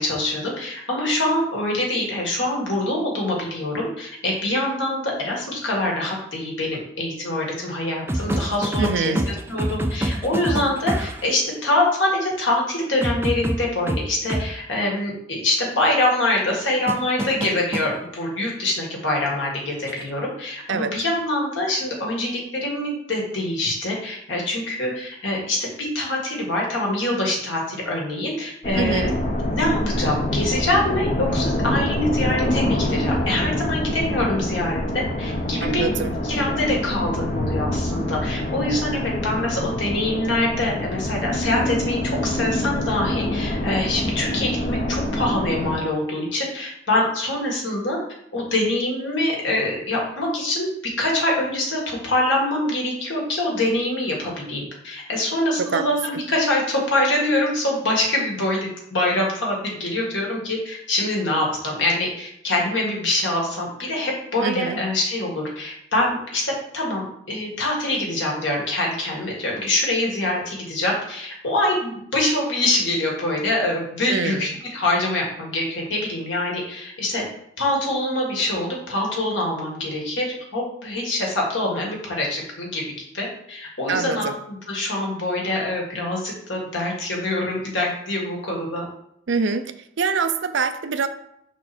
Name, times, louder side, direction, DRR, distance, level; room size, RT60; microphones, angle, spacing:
voice 1, 0.0-29.1 29.5-35.8 36.2-48.0 48.3-50.7 51.0-77.2 77.6-80.3 80.5-82.8 83.1-88.8, left 1 dB, 70° left, -2 dB, 1.9 m, -24 dB
sound 1, 8.1-11.3 13.0-14.5 16.9-17.9 19.9-20.1, right 1 dB, 10° right, 0.4 m, -26 dB
voice 2, 8.8-9.3 20.7-21.0 28.8-29.2 35.6-36.1 55.6-55.9 64.4-64.8 74.1-74.5 83.9-84.3 89.3-91.1, right 5 dB, 65° right, 10 dB, 0.5 m, -25 dB
sound 2, 28.6-45.8, left 1 dB, 40° left, 0.7 m, -25 dB
5.9 x 4.4 x 4.3 m, 0.74 s
head